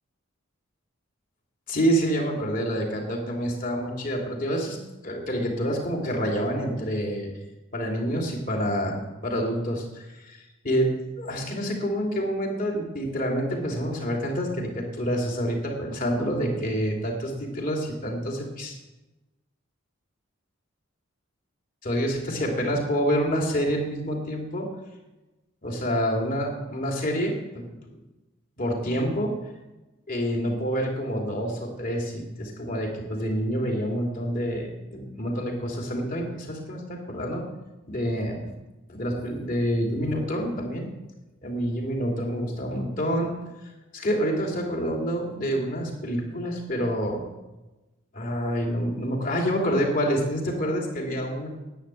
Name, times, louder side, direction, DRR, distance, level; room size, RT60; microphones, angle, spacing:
voice 1, 1.7-4.8 5.0-7.3 7.7-10.9 11.2-18.7 21.8-24.7 25.6-27.7 28.6-29.4 30.1-37.4 37.9-38.5 38.9-40.9 41.4-43.3 43.9-47.3 48.1-51.5, equal, 45° left, 0 dB, 3.0 m, -27 dB
11.5 x 8.1 x 8.9 m, 1.1 s
head